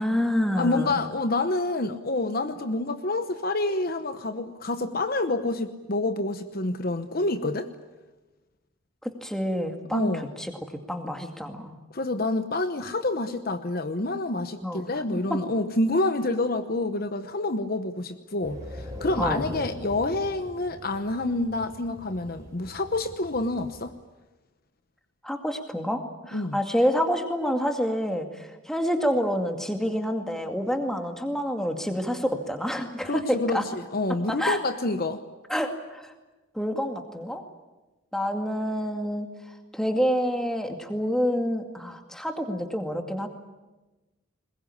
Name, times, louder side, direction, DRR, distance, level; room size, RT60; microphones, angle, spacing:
voice 1, 0.0-1.0 9.0-10.5 10.9-11.8 14.6-15.4 19.2-19.5 25.2-26.0 26.3-33.6 34.3-34.6 35.5-36.1 36.5-37.4 38.1-39.3 39.7-43.3, equal, ahead, 4 dB, 2.2 m, -28 dB
voice 2, 0.6-7.7 9.9-10.3 11.9-23.9 26.3-26.6 33.0-35.2, left 2 dB, 45° left, 9 dB, 1.0 m, -28 dB
sound 1, 18.4-23.8, equal, 15° right, 4.5 m, -41 dB
21.5 x 21.0 x 9.9 m, 1.1 s
head